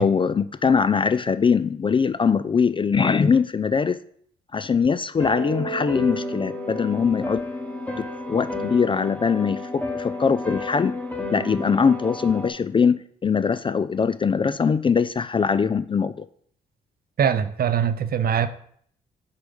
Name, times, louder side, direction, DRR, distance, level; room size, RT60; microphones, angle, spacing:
voice 1, 0.0-4.0 4.5-7.4 8.0-10.9 11.3-16.3, left 6 dB, 25° left, 0.3 m, -22 dB
sound 1, 5.2-12.5, left 1 dB, 5° left, 1.2 m, -31 dB
voice 2, 17.2-18.5, right 8 dB, 50° right, 0.6 m, -22 dB
6.5 x 3.5 x 5.3 m
hypercardioid pair, 55°, 21 cm